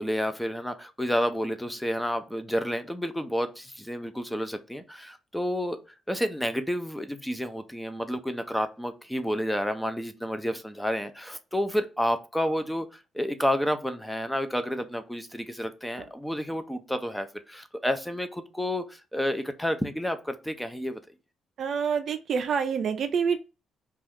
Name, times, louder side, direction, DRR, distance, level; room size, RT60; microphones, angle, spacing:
voice 1, 0.0-5.8 6.1-21.0, equal, 5° left, 0.4 m, -30 dB
voice 2, 21.6-23.4, right 6 dB, 60° right, 0.4 m, -27 dB
2.5 x 2.3 x 3.5 m
cardioid pair, 90°, 0 cm